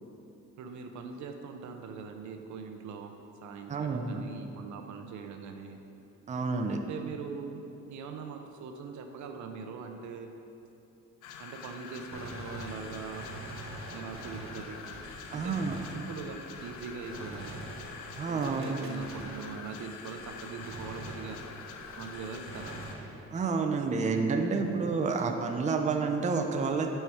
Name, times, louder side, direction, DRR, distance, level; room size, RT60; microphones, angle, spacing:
voice 1, 0.6-3.1 3.4-5.8 6.7-10.3 11.4-13.3 13.9-14.8 15.3-15.6 15.9-17.5 18.3-21.4 22.0-22.8, right 5 dB, 70° right, 5 dB, 0.6 m, -42 dB
voice 2, 3.7-4.2 6.3-6.8 15.3-15.7 18.2-18.8 23.3-26.9, right 4 dB, 25° right, 4 dB, 0.5 m, -29 dB
sound 1, 11.2-22.9, left 6 dB, 85° left, 0.5 m, -46 dB
Gunshot gunfire, 12.1-19.9 20.2-23.5, right 2 dB, 45° right, 0.8 m, -45 dB
5.6 x 4.6 x 4.4 m, 2.9 s
cardioid pair, 90°, 30 cm